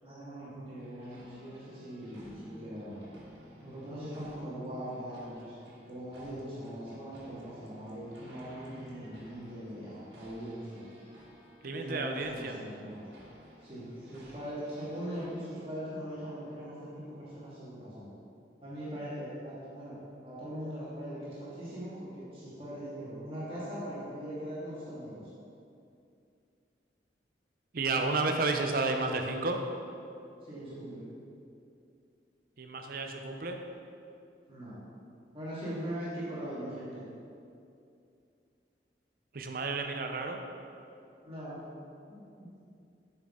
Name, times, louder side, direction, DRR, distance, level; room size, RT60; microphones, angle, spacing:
voice 1, 0.0-3.0 3.6-5.6 5.9-10.8 11.7-13.0 13.6-18.1 18.6-25.3 30.4-31.1 34.5-34.8 35.3-37.1 41.3-41.6 42.1-42.2, equal, 30° right, -10 dB, 1.9 m, -41 dB
sound 1, 0.8-15.7, equal, 80° right, 1.8 m, -55 dB
voice 2, 11.6-12.6 27.7-29.6 32.6-33.6 39.3-40.4, right 3 dB, 55° right, 4 dB, 0.6 m, -31 dB
8.3 x 6.0 x 3.7 m, 2.5 s
head